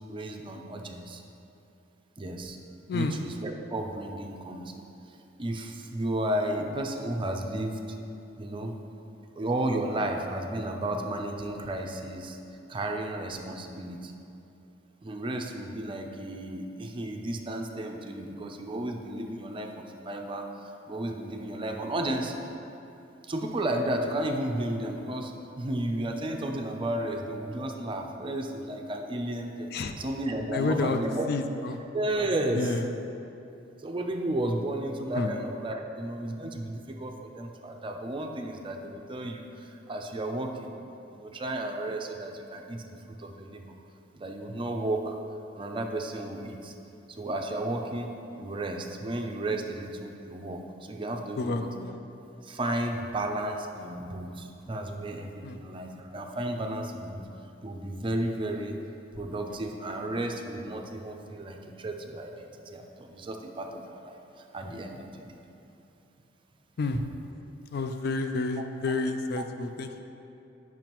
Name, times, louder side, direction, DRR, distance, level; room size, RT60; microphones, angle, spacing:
voice 1, 0.1-1.2 2.2-2.6 2.9-4.8 5.4-8.0 8.4-8.7 9.4-12.4 12.7-14.1 15.0-22.4 23.2-31.3 31.9-32.7 33.8-40.7 41.1-43.7 44.1-45.1 45.5-46.7 47.2-51.7 52.4-57.2 57.6-58.8 59.2-65.4 69.4-69.5, right 1 dB, 30° right, 3 dB, 0.5 m, -33 dB
voice 2, 30.5-31.0 31.3-31.8 32.5-32.9 35.1-35.3 51.4-52.0 55.4-55.6 66.8-67.0 67.7-70.0, left 3 dB, 60° left, 7 dB, 0.4 m, -30 dB
8.9 x 5.9 x 3.0 m, 2.9 s
head